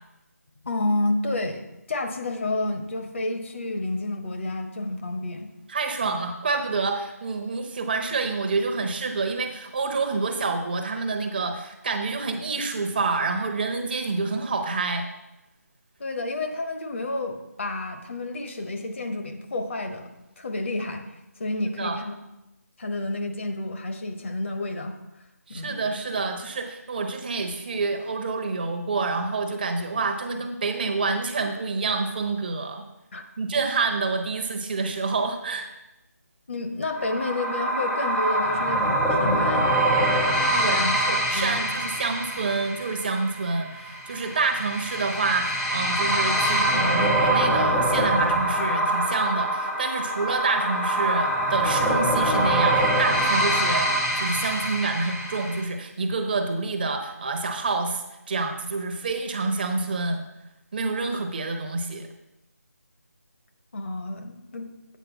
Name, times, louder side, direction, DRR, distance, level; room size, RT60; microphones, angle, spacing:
voice 1, 0.6-1.6 1.9-5.5 6.0-6.2 16.0-20.1 20.4-21.0 21.4-22.1 22.8-25.0 25.5-25.8 33.1-33.2 36.5-39.7 40.5-41.0 41.3-41.8 63.7-64.7, left 2 dB, 45° left, 5 dB, 1.1 m, -30 dB
voice 2, 5.7-15.1 21.8-22.0 25.5-32.8 33.4-35.7 40.5-53.9 54.2-60.2 60.7-62.1, right 3 dB, 35° right, 5 dB, 0.9 m, -28 dB
sound 1, 36.9-55.6, right 1 dB, 5° left, 0.4 m, -24 dB
8.3 x 4.8 x 6.0 m, 0.91 s
figure-of-eight pair, 165°, 9 cm